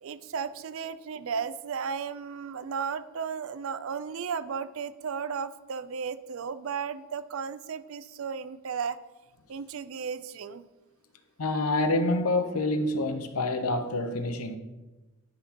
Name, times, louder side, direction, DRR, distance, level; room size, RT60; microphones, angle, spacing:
voice 1, 0.0-9.0 9.5-10.6, right 6 dB, 65° right, 0.4 m, -34 dB
voice 2, 11.4-14.6, left 2 dB, 80° left, 0.7 m, -27 dB
10.0 x 5.9 x 2.9 m
head